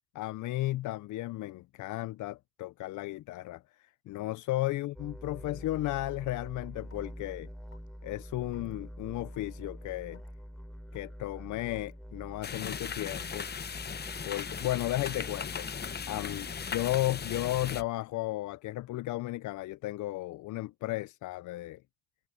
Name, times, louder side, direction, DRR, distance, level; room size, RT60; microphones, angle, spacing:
voice 1, 0.1-7.5 8.0-10.2 10.9-13.5 14.2-15.7 16.1-16.5 16.7-21.8, left 16 dB, 75° left, 0.5 m, -34 dB
sound 1, 4.9-17.9, equal, ahead, 3.7 m, -46 dB
Raindrop / Water tap faucet / Drip, 6.1-6.3 6.9-7.2 7.7-7.9 8.5-8.7 9.3-9.6 10.1-10.3 10.9-11.0 11.7-11.9 12.6-12.7 13.4-13.5 14.2-14.4 15.0-15.3 15.8-16.0 16.6-16.8, left 7 dB, 50° left, 4.4 m, -60 dB
sound 2, 12.4-17.8, left 7 dB, 35° left, 0.8 m, -38 dB
cardioid pair, 90°, 30 cm